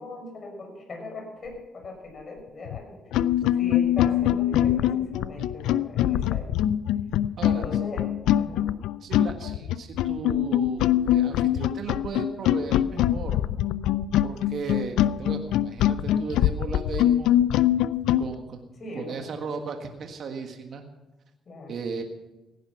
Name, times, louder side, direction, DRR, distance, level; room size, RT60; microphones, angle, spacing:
voice 1, 0.0-3.0 3.5-6.5 7.4-8.1 8.4-8.7 18.8-19.4 21.5-21.8, left 2 dB, 45° left, 1 dB, 6.1 m, -39 dB
sound 1, 2.7-2.8 3.1-18.3, left 12 dB, 90° left, 0.4 m, -23 dB
voice 2, 9.0-13.4 14.2-17.6 18.2-18.6 18.9-20.8 21.7-22.0, right 5 dB, 60° right, 5 dB, 1.6 m, -36 dB
16.5 x 10.0 x 5.8 m, 1.0 s
cardioid pair, 90°, 0 cm